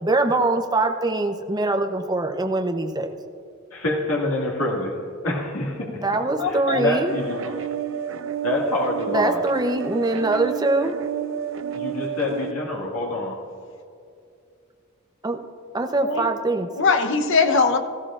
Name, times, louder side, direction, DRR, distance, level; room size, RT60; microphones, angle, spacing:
voice 1, 0.0-3.1 5.9-7.1 9.1-11.0 15.2-15.4 15.7-16.7, right 2 dB, 20° right, 5 dB, 0.7 m, -23 dB
voice 2, 3.7-4.9 5.2-6.0 6.4-7.6 8.4-9.4 11.7-13.3, left 2 dB, 85° left, -3 dB, 2.0 m, -26 dB
voice 3, 6.4-6.9 16.0-16.3 16.8-17.8, left 4 dB, 60° left, 6 dB, 0.9 m, -21 dB
sound 1, 7.1-12.5, right 8 dB, 65° right, 0.7 m, -30 dB
18.0 x 14.5 x 2.5 m, 2.4 s
head